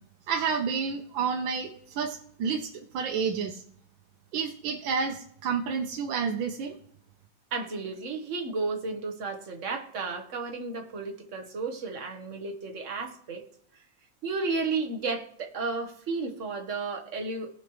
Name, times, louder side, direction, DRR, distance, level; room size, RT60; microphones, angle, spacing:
voice 1, 0.3-3.6 4.3-6.8, right 6 dB, 85° right, 3 dB, 1.6 m, -30 dB
voice 2, 7.5-13.4 14.2-17.5, right 4 dB, 45° right, 4 dB, 1.4 m, -33 dB
18.5 x 6.2 x 3.1 m, 0.67 s
omnidirectional pair, 2.1 m